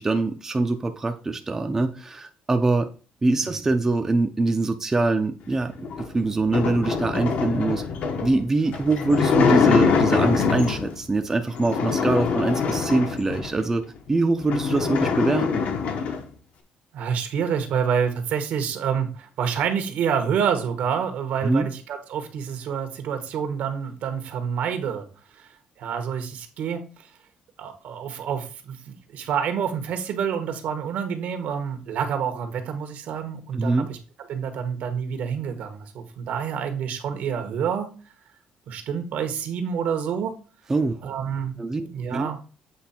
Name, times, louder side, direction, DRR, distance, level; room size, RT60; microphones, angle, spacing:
voice 1, 0.0-2.9 3.2-5.7 6.0-7.8 8.2-13.8 14.1-15.6 21.4-21.7 33.5-33.9 40.7-40.9 41.6-42.3, right 3 dB, 15° right, 5 dB, 0.6 m, -23 dB
sound 1, 5.8-11.0 11.5-13.6 14.1-14.2 14.4-16.3, left 5 dB, 65° left, 1.1 m, -24 dB
voice 2, 16.9-25.1 25.3-25.5 25.8-27.1 27.6-34.0 34.3-37.9 38.7-40.3 41.0-41.6 41.9-42.4, right 7 dB, 70° right, 7 dB, 1.3 m, -28 dB
8.0 x 3.2 x 4.3 m, 0.36 s
cardioid pair, 140°, 3 cm